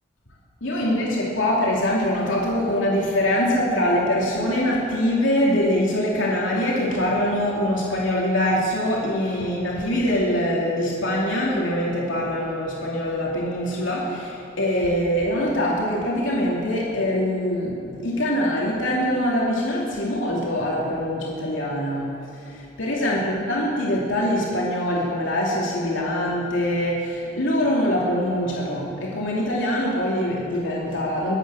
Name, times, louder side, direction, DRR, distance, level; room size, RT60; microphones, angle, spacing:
voice 1, 0.6-31.4, left 1 dB, 85° left, -4 dB, 2.8 m, -23 dB
23.5 x 9.2 x 6.4 m, 2.5 s
head